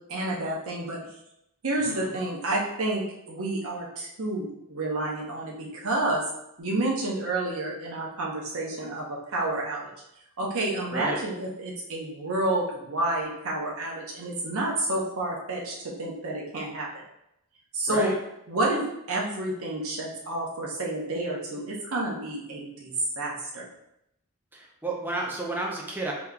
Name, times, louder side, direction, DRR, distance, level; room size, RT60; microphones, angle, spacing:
voice 1, 0.1-1.0 1.6-6.2 6.6-9.9 10.4-16.9 17.7-18.1 18.5-23.6, right 2 dB, 65° right, -2 dB, 0.8 m, -29 dB
voice 2, 10.9-11.2 17.9-18.1 24.5-26.1, right 2 dB, 10° right, -2 dB, 0.5 m, -32 dB
3.7 x 3.0 x 2.2 m, 0.80 s
head